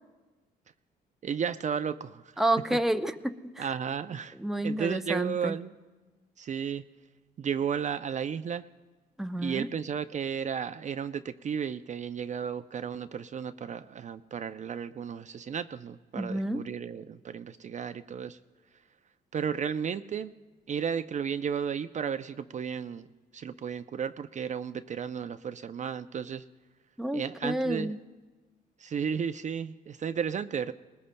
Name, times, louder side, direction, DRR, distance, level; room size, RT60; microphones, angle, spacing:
voice 1, 1.2-2.3 3.6-4.4 4.6-5.7 6.4-6.8 7.4-8.6 9.4-18.4 19.3-20.3 20.7-23.1 23.3-26.4 27.1-27.9 28.8-30.7, right 7 dB, 40° right, 10 dB, 0.5 m, -33 dB
voice 2, 2.4-3.7 4.4-5.6 9.2-9.7 16.1-16.6 27.0-28.0, right 1 dB, ahead, 7 dB, 0.6 m, -30 dB
20.5 x 19.5 x 2.2 m, 1.2 s
cardioid pair, 75°, 18 cm